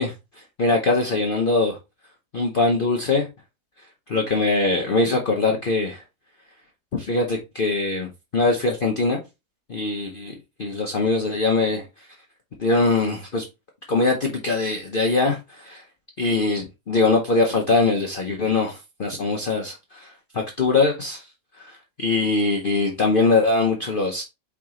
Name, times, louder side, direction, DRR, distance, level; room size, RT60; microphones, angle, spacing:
voice 1, 0.0-1.8 2.3-3.3 3.8-6.0 6.9-9.2 9.7-12.1 12.6-13.5 13.9-15.9 16.2-21.3 21.6-24.2, left 3 dB, 45° left, 0.7 m, -22 dB
4.7 x 3.0 x 3.6 m
omnidirectional pair, 1.7 m